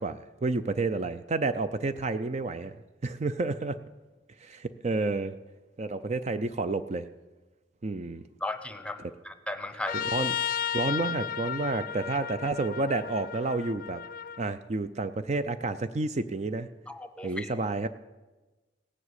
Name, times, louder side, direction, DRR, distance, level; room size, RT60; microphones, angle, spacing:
voice 1, 0.0-2.8 3.0-3.8 4.4-5.4 5.8-7.1 7.8-8.3 9.9-10.3 10.7-14.0 14.4-16.7 17.2-17.9, right 3 dB, 40° right, 11 dB, 0.5 m, -30 dB
voice 2, 8.4-10.0 16.9-17.5, left 2 dB, 5° left, 10 dB, 0.8 m, -36 dB
Trumpet, 9.9-14.4, left 8 dB, 50° left, 0.4 m, -34 dB
17.5 x 7.6 x 8.2 m, 1.2 s
head